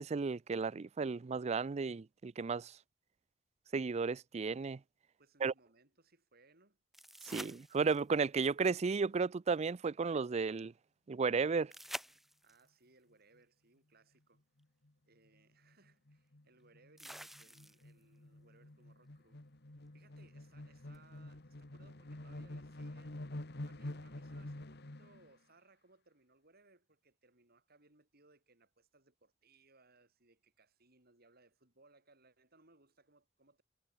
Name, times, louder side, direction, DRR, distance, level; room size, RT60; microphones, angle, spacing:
voice 1, 0.0-2.7 3.7-4.8 5.4-5.5 7.3-10.7 11.1-11.7, right 4 dB, 35° right, 0.4 m, -34 dB
voice 2, 5.2-6.8 12.4-14.4 15.1-19.4 19.9-23.2 23.6-33.6, right 3 dB, 55° right, 6.6 m, -67 dB
sound 1, 6.9-8.2 11.7-12.7 14.6-14.7 17.0-18.0 20.9-21.0, equal, ahead, 1.2 m, -48 dB
sound 2, 14.6-14.9 15.3-15.4 15.6-25.3, left 1 dB, 60° left, 1.7 m, -48 dB
head